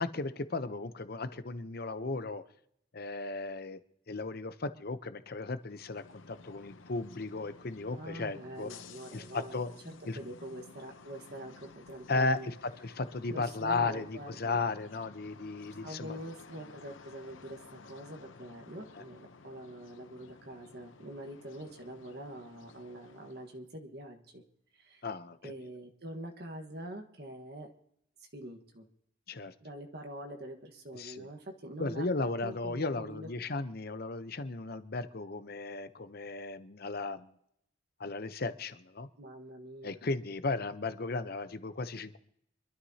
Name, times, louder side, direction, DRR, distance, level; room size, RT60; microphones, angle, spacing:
voice 1, 0.0-2.4 2.9-3.8 4.1-8.7 9.1-9.7 10.1-10.2 12.1-12.5 12.8-16.2 25.0-25.5 29.3-29.5 30.9-31.3 31.8-37.3 38.0-39.1 39.8-42.2, left 3 dB, 50° left, 11 dB, 0.8 m, -35 dB
sound 1, 5.5-23.6, left 4 dB, 85° left, 0.8 m, -54 dB
voice 2, 7.9-12.5 13.3-14.6 15.8-24.4 24.7-25.0 25.4-27.7 28.2-28.9 29.6-32.1 32.4-33.3 39.2-40.0, right 1 dB, 55° right, 3 dB, 1.5 m, -45 dB
25.5 x 12.5 x 2.9 m, 0.73 s
head